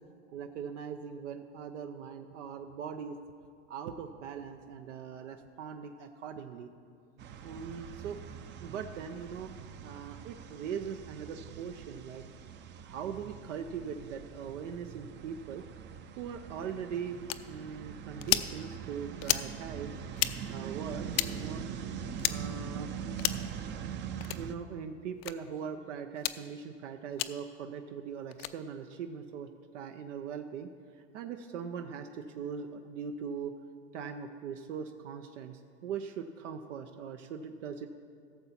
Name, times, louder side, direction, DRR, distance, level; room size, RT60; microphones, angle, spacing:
voice 1, 0.3-3.2 3.7-6.7 7.4-8.2 8.6-9.5 9.8-12.2 12.8-15.6 16.2-17.2 17.5-19.9 20.5-21.6 22.2-22.9 24.4-29.5 29.7-30.7 31.1-33.5 33.9-37.9, right 7 dB, 75° right, 6 dB, 0.7 m, -40 dB
sound 1, 7.2-24.5, right 8 dB, 30° right, 0.6 m, -43 dB
sound 2, 17.3-17.4 18.2-18.5 19.2-19.5 20.1-20.3 21.1-21.3 22.2-22.4 23.2-23.5 24.2-24.4 25.2-25.3 26.2-26.4 27.2-27.3 28.3-28.5, left 16 dB, 55° left, 0.6 m, -30 dB
16.0 x 7.1 x 4.4 m, 2.3 s
hypercardioid pair, 110°, 36 cm